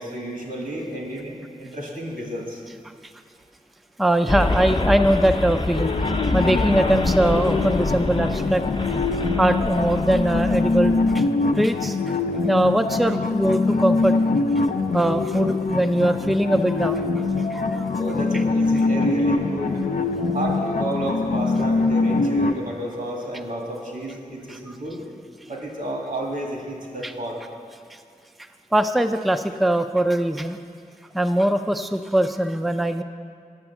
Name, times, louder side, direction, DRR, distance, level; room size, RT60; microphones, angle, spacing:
voice 1, 0.0-2.6 17.9-19.9 20.3-25.0 25.5-27.4, right 1 dB, 85° right, -1 dB, 2.1 m, -31 dB
voice 2, 4.0-5.9 6.3-8.9 9.4-11.2 11.6-12.0 12.5-14.2 14.9-17.1 17.5-17.9 24.7-24.8 27.0-27.1 28.7-30.6 31.1-33.0, right 1 dB, ahead, 7 dB, 0.4 m, -21 dB
sound 1, 4.3-11.2, left 2 dB, 40° left, 0.7 m, -26 dB
sound 2, 5.8-22.5, left 3 dB, 75° left, 0.5 m, -23 dB
9.6 x 7.1 x 7.0 m, 2.3 s
wide cardioid pair, 60°, 14 cm